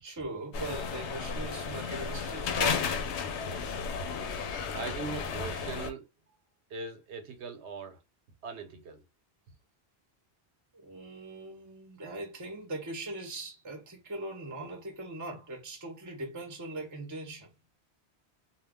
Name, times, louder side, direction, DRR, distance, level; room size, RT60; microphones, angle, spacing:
voice 1, 0.0-3.0 10.7-17.5, right 2 dB, 20° right, 0.6 m, -40 dB
sound 1, 0.5-5.9, left 5 dB, 90° left, 0.9 m, -33 dB
voice 2, 4.7-6.1 6.7-8.0 8.4-9.0, right 4 dB, 80° right, 1.0 m, -40 dB
2.3 x 2.2 x 3.4 m
omnidirectional pair, 1.1 m